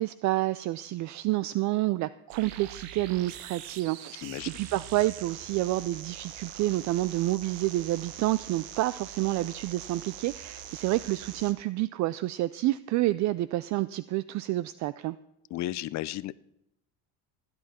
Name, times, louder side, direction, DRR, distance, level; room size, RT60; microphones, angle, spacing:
voice 1, 0.0-15.2, right 17 dB, 50° right, 17 dB, 0.4 m, -29 dB
sound 1, 2.3-11.5, right 9 dB, 85° right, 1.3 m, -43 dB
voice 2, 4.2-4.5 15.5-16.4, left 15 dB, 50° left, 19 dB, 0.5 m, -34 dB
17.0 x 10.5 x 4.2 m, 0.83 s
cardioid pair, 120°, 36 cm